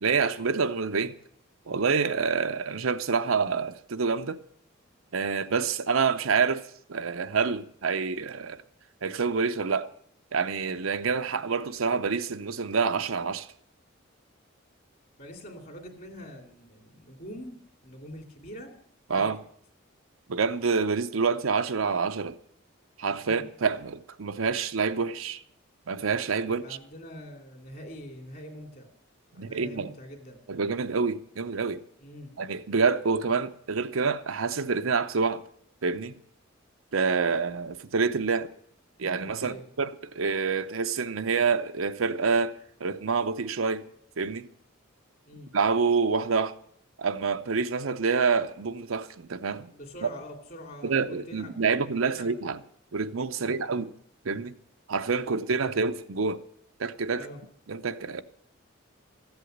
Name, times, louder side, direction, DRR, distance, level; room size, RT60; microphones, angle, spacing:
voice 1, 0.0-1.1 1.7-4.4 5.1-6.6 6.9-8.6 9.0-9.9 10.3-13.5 19.1-19.4 20.3-22.4 23.0-25.4 25.9-26.6 29.4-29.9 30.5-31.8 32.4-35.4 35.8-36.1 36.9-38.5 39.0-43.8 44.2-44.5 45.5-46.5 47.0-49.7 50.8-52.6 52.9-53.9 54.2-54.5 54.9-56.4 56.8-57.3 57.7-58.2, right 5 dB, 90° right, 0.7 m, -27 dB
voice 2, 15.2-18.7 19.2-19.4 23.2-23.4 26.4-28.9 29.3-30.4 32.0-32.3 39.4-39.7 45.2-45.5 49.7-52.5 53.3-53.6 57.1-57.4, equal, 45° left, 2.6 m, -44 dB
14.0 x 8.1 x 7.9 m
head